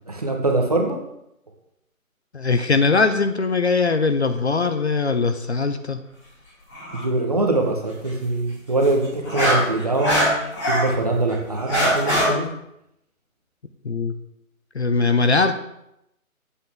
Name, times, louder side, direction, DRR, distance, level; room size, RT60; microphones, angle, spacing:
voice 1, 0.1-1.0 6.9-10.3 10.7-12.5, right 2 dB, 25° right, 2 dB, 0.8 m, -23 dB
voice 2, 2.3-6.0 13.8-14.1 14.7-15.6, left 4 dB, 50° left, 9 dB, 0.6 m, -20 dB
sound 1, 6.7-7.0 8.8-10.9 11.3-12.3, equal, 15° left, 2.3 m, -21 dB
8.1 x 7.7 x 3.5 m, 0.81 s
figure-of-eight pair, 160°, 43 cm